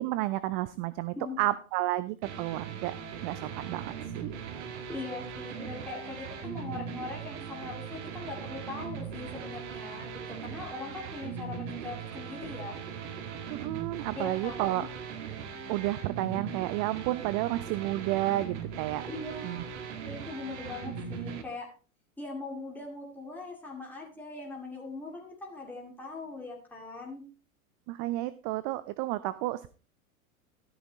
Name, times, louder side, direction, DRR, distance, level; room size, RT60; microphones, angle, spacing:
voice 1, 0.0-3.0 3.2-4.3 13.5-14.9 15.7-19.0 19.4-19.6 27.9-29.7, right 16 dB, 30° right, 16 dB, 0.5 m, -31 dB
sound 1, 2.2-21.4, right 6 dB, 55° right, 1.8 m, -39 dB
voice 2, 4.9-12.8 14.2-14.9 19.1-21.7 22.2-27.2, left 3 dB, 5° left, -2 dB, 2.3 m, -41 dB
13.0 x 9.5 x 3.0 m, 0.35 s
figure-of-eight pair, 90°, 42 cm